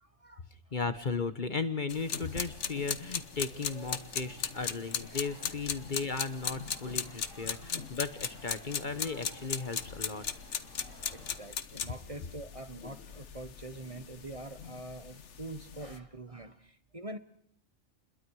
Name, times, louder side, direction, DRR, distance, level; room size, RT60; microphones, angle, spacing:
voice 1, 0.0-0.4 3.7-4.0 5.8-5.9 7.1-7.7 8.7-9.2 10.7-17.2, right 2 dB, 30° right, 10 dB, 1.2 m, -46 dB
voice 2, 0.7-10.2, left 4 dB, 40° left, 11 dB, 1.2 m, -36 dB
sound 1, 1.9-16.0, left 7 dB, 70° left, 1.4 m, -38 dB
sound 2, 2.0-11.4, right 1 dB, 75° right, 7.4 m, -56 dB
29.0 x 21.5 x 4.8 m, 0.69 s
omnidirectional pair, 1.3 m